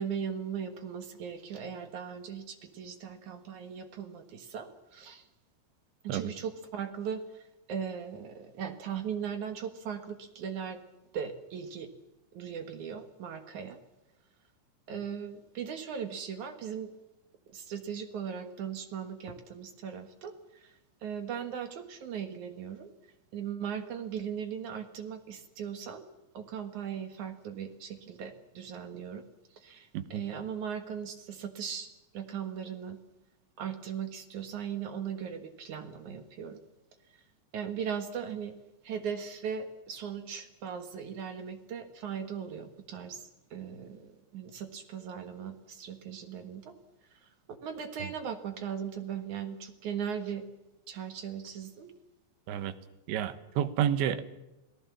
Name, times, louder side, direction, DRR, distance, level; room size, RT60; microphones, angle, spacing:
voice 1, 0.0-5.3 6.0-7.4 7.7-10.8 11.1-11.9 12.3-13.8 14.9-16.9 17.5-22.9 23.3-26.1 26.3-29.3 29.5-33.0 33.6-36.6 37.5-38.5 38.8-46.8 47.5-50.5 50.9-51.9, right 7 dB, 60° right, 8 dB, 2.2 m, -38 dB
voice 2, 53.1-54.3, right 10 dB, 75° right, 12 dB, 3.5 m, -30 dB
29.0 x 18.0 x 7.2 m, 0.98 s
omnidirectional pair, 5.3 m